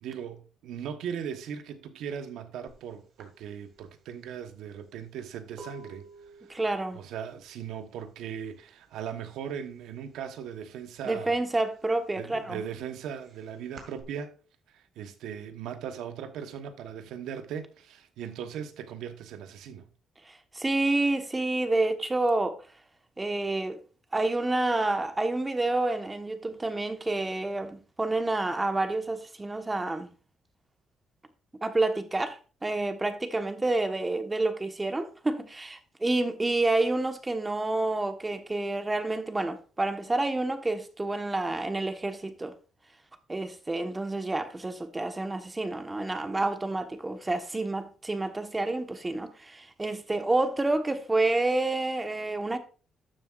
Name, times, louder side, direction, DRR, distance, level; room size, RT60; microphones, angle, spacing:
voice 1, 0.0-6.1 6.4-6.6 6.9-11.3 12.2-14.4 14.7-19.8, right 8 dB, 85° right, 1.1 m, -38 dB
sound 1, 2.7-2.8 3.2-8.9 9.1-9.6 9.9-11.1 11.5-14.0, right 3 dB, 65° right, 2.1 m, -51 dB
voice 2, 6.5-7.0 11.0-12.6 20.3-22.6 23.2-23.8 24.1-30.1 31.6-42.5 43.3-52.6, right 2 dB, 20° right, 1.3 m, -29 dB
12.0 x 7.4 x 2.5 m
cardioid pair, 90°, 0 cm